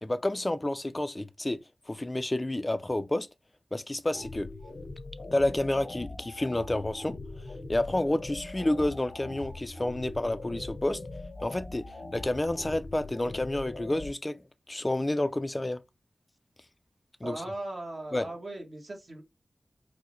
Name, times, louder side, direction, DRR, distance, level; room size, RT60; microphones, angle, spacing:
voice 1, 0.0-1.6 1.9-3.3 3.7-4.5 5.3-7.1 7.7-11.0 11.4-11.8 12.1-14.4 14.7-15.8 17.2-17.4 18.1-18.3, left 1 dB, 25° left, 0.4 m, -29 dB
sound 1, 4.1-14.1, left 2 dB, 90° left, 1.0 m, -41 dB
voice 2, 17.2-19.2, right 2 dB, 55° right, 1.1 m, -38 dB
4.5 x 2.1 x 3.0 m
wide cardioid pair, 90°, 0 cm